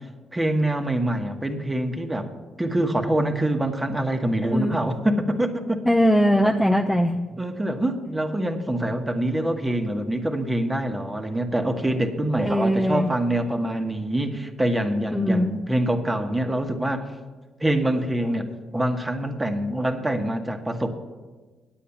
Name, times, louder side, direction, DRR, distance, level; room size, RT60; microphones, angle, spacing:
voice 1, 0.3-2.3 2.6-5.8 7.4-17.1 17.6-18.5 18.7-20.9, right 1 dB, 15° right, 5 dB, 1.3 m, -25 dB
voice 2, 4.5-4.8 5.9-7.1 12.5-13.1 15.1-15.5, equal, 5° left, 2 dB, 0.6 m, -20 dB
9.2 x 8.5 x 7.1 m, 1.3 s
cardioid pair, 80°, 0 cm